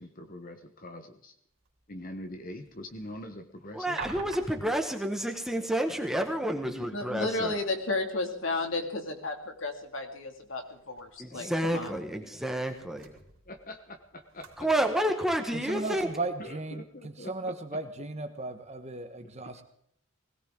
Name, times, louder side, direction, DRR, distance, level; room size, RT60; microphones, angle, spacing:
voice 1, 0.0-1.3 1.9-4.0 13.5-14.7 16.4-17.5 19.4-19.6, left 1 dB, 40° left, 6 dB, 1.2 m, -43 dB
sound 1, 1.5-16.8, right 4 dB, 75° right, 3.4 m, -51 dB
voice 2, 3.7-7.6 11.2-13.1 14.6-16.1, right 1 dB, ahead, 4 dB, 1.7 m, -30 dB
voice 3, 6.8-11.9, left 2 dB, 65° left, 4 dB, 2.6 m, -33 dB
voice 4, 15.5-19.6, right 2 dB, 30° right, 7 dB, 1.4 m, -36 dB
20.5 x 18.0 x 3.9 m, 0.69 s
head